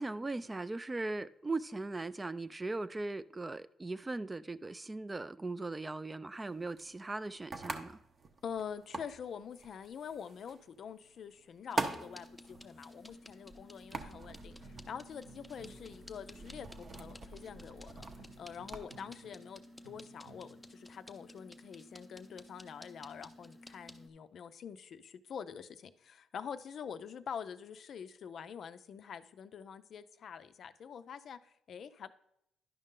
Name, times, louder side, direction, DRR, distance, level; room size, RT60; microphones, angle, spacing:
voice 1, 0.0-8.0, right 2 dB, 20° right, 0.3 m, -39 dB
sound 1, 6.4-18.9, right 3 dB, 40° right, 0.7 m, -45 dB
voice 2, 8.4-18.0 18.4-32.1, left 7 dB, 60° left, 0.4 m, -46 dB
sound 2, 11.7-24.1, left 1 dB, 5° left, 0.7 m, -54 dB
sound 3, 14.0-20.7, right 2 dB, 85° right, 1.0 m, -55 dB
11.0 x 5.3 x 3.7 m
cardioid pair, 90°, 0 cm